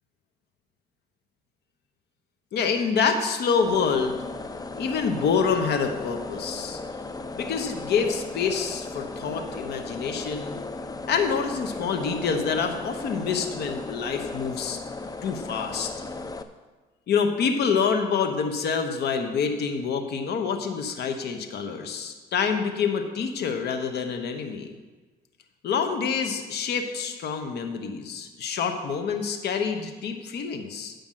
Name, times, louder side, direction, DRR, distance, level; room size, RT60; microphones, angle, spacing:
voice 1, 2.5-4.2 4.8-6.8 7.4-10.5 11.1-14.8 15.2-15.9 17.1-24.7 25.6-30.9, left 6 dB, 70° left, 6 dB, 1.1 m, -27 dB
sound 1, 3.6-16.4, left 3 dB, 20° left, 0.6 m, -36 dB
9.2 x 5.2 x 7.4 m, 1.3 s
cardioid pair, 85°, 18 cm